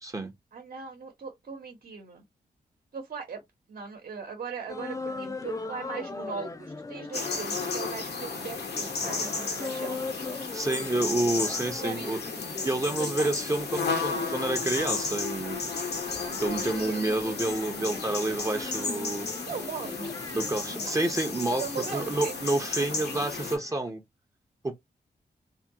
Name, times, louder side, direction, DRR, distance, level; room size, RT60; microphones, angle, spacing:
voice 1, 0.0-0.3 10.5-12.2 12.6-15.7 16.3-19.3 20.3-21.6 21.9-24.0 24.6-24.7, right 2 dB, 20° right, 0.7 m, -29 dB
voice 2, 0.5-2.2 2.9-3.4 3.7-10.0 11.8-12.1 13.0-13.3 16.7-17.0 17.9-18.0 19.4-21.0 21.6-22.4, right 5 dB, 60° right, 1.0 m, -39 dB
sound 1, 4.7-23.9, left 3 dB, 20° left, 0.4 m, -40 dB
sound 2, 7.1-23.6, left 4 dB, 80° left, 1.1 m, -33 dB
3.4 x 2.3 x 2.7 m
wide cardioid pair, 110°, 16 cm